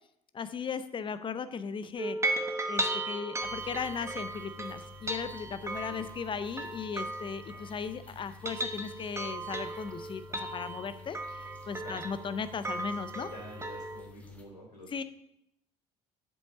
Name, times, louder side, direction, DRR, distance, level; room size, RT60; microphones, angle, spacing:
voice 1, 0.3-13.3 14.9-15.0, left 6 dB, 25° left, 14 dB, 0.6 m, -37 dB
sound 1, 2.0-7.9 8.3-14.0, right 2 dB, 15° right, 1.1 m, -36 dB
sound 2, 3.4-14.4, left 5 dB, 5° left, 1.5 m, -51 dB
voice 2, 13.3-14.9, equal, 85° left, -5 dB, 2.9 m, -48 dB
7.8 x 5.3 x 6.8 m, 0.75 s
figure-of-eight pair, 60°, 20 cm